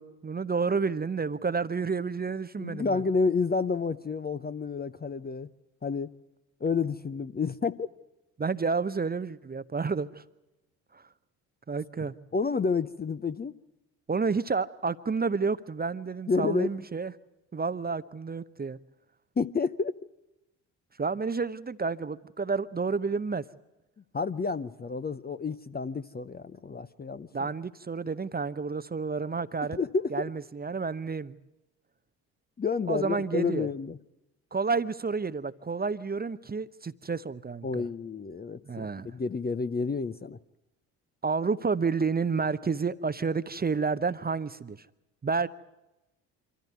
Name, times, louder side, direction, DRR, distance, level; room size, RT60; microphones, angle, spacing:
voice 1, 0.0-3.0 8.4-10.2 10.9-11.0 11.7-12.1 14.1-17.1 17.5-18.8 21.0-23.4 27.3-29.8 30.1-31.4 32.9-33.7 34.5-37.8 38.7-39.1 41.2-44.8 45.2-45.5, right 4 dB, 20° right, 0.8 m, -30 dB
voice 2, 2.6-5.5 5.8-6.1 6.6-7.9 12.0-13.5 16.3-16.7 19.4-20.0 24.1-27.5 29.8-30.2 32.6-34.0 37.6-40.4, left 4 dB, 20° left, 0.7 m, -30 dB
25.0 x 14.0 x 9.4 m
hypercardioid pair, 50°, 47 cm